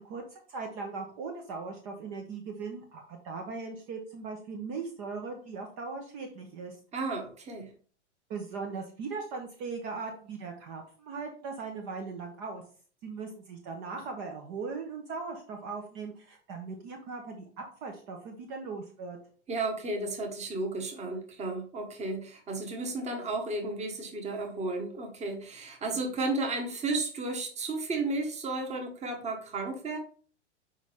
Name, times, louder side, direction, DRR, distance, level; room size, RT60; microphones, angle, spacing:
voice 1, 0.0-6.8 8.3-12.6 13.0-17.5 17.8-19.2, right 4 dB, 40° right, 3 dB, 1.2 m, -39 dB
voice 2, 6.9-7.7 19.5-30.0, right 2 dB, 20° right, 3 dB, 1.5 m, -33 dB
6.3 x 5.2 x 3.5 m, 0.42 s
figure-of-eight pair, 105°, 35 cm